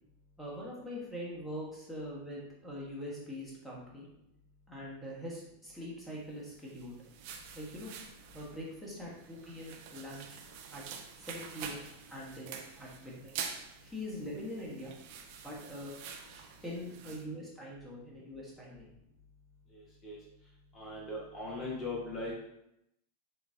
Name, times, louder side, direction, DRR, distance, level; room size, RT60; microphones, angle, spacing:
voice 1, 0.4-4.1 4.7-7.0 7.5-7.9 8.3-10.4 10.6-10.8 11.2-13.4 13.8-14.9 15.4-15.9 16.3-18.9, equal, ahead, -5 dB, 1.2 m, -43 dB
sound 1, 6.5-17.2, right 7 dB, 45° right, 0.5 m, -47 dB
voice 2, 19.7-22.3, left 2 dB, 25° left, -4 dB, 1.1 m, -40 dB
7.0 x 2.4 x 2.6 m, 0.82 s
figure-of-eight pair, 90°, 0 cm